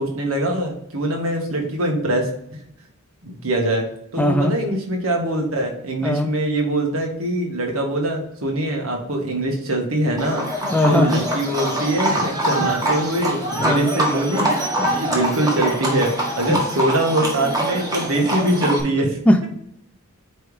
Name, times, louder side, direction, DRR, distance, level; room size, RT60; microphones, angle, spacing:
voice 1, 0.0-2.3 3.2-3.9 4.1-14.6 14.9-19.2, right 1 dB, 80° right, 1 dB, 1.7 m, -23 dB
voice 2, 4.2-4.6 6.0-6.3 10.7-11.2 13.6-13.9 14.8-14.9 16.5-16.6 19.3-19.5, left 1 dB, 5° left, 4 dB, 0.7 m, -18 dB
Livestock farm animals working animals, 10.2-18.8, right 1 dB, 20° right, 1.5 m, -24 dB
9.1 x 3.4 x 3.4 m, 0.74 s
head